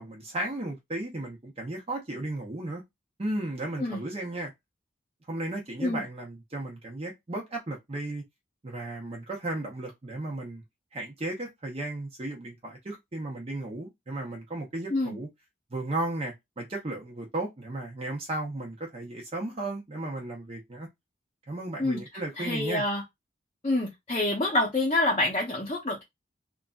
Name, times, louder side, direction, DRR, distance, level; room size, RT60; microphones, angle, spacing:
voice 1, 0.0-2.8 3.2-4.5 5.3-8.2 8.6-10.6 10.9-15.3 15.7-20.9 21.5-22.8, right 2 dB, 35° right, 0.7 m, -35 dB
voice 2, 22.4-23.0 23.6-26.0, left 2 dB, 35° left, 0.7 m, -27 dB
3.0 x 2.5 x 2.3 m
head